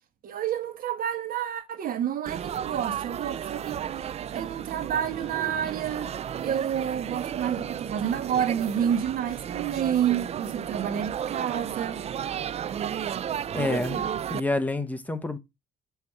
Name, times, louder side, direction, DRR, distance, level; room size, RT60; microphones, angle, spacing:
voice 1, 0.2-3.9 4.3-6.1 6.4-12.0, right 9 dB, 55° right, 1.6 m, -29 dB
Laughter / Chatter / Crowd, 2.3-14.4, right 9 dB, 40° right, 0.4 m, -33 dB
voice 2, 13.5-15.4, left 2 dB, 10° left, 1.0 m, -28 dB
6.8 x 4.1 x 6.1 m
cardioid pair, 110°, 17 cm